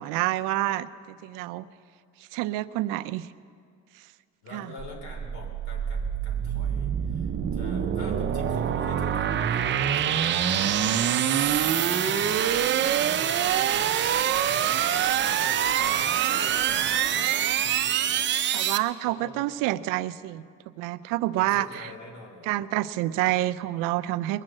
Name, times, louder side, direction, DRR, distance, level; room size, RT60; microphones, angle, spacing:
voice 1, 0.0-1.7 2.3-3.3 4.5-4.7 18.5-21.9 22.5-24.4, right 16 dB, 85° right, 13 dB, 0.6 m, -28 dB
voice 2, 4.4-14.7 15.0-15.2 15.6-18.3 19.0-19.5 21.4-22.6, left 2 dB, 60° left, 1 dB, 3.4 m, -45 dB
sound 1, 4.8-18.8, right 9 dB, 35° right, 0.6 m, -25 dB
21.0 x 7.5 x 7.7 m, 2.3 s
cardioid pair, 145°, 31 cm